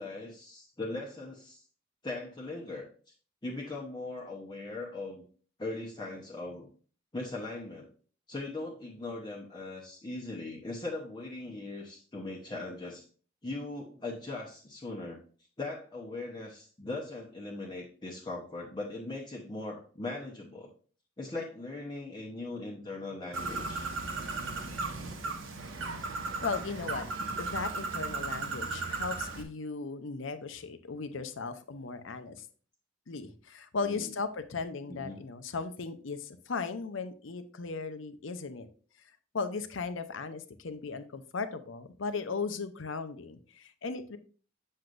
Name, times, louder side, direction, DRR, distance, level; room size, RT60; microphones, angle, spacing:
voice 1, 0.0-1.6 2.0-2.9 3.4-5.2 5.6-6.7 7.1-7.9 8.3-13.0 13.4-15.2 15.6-20.7 21.2-23.9 31.2-31.3 33.8-34.1 34.9-35.2, left 2 dB, 20° left, -3 dB, 0.9 m, -39 dB
Bird, 23.3-29.4, right 3 dB, 75° right, 1.1 m, -36 dB
voice 2, 26.4-27.1 27.4-32.5 33.1-38.7 39.3-44.2, left 4 dB, 70° left, 10 dB, 0.7 m, -37 dB
7.8 x 6.4 x 2.5 m, 0.40 s
head